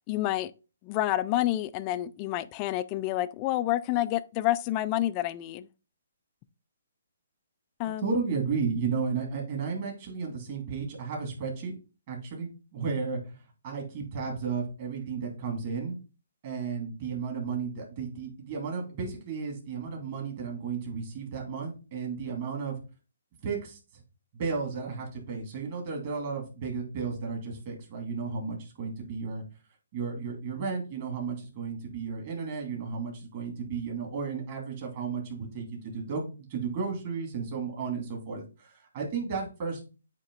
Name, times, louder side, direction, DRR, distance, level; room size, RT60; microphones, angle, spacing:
voice 1, 0.1-0.5 0.8-5.7 7.8-8.2, left 14 dB, 20° left, 0.3 m, -28 dB
voice 2, 7.8-11.7 12.1-16.0 16.4-22.8 23.4-23.8 24.3-29.4 29.9-39.8, right 5 dB, 35° right, 2.4 m, -33 dB
8.6 x 3.0 x 3.8 m
hypercardioid pair, 165°, 0 cm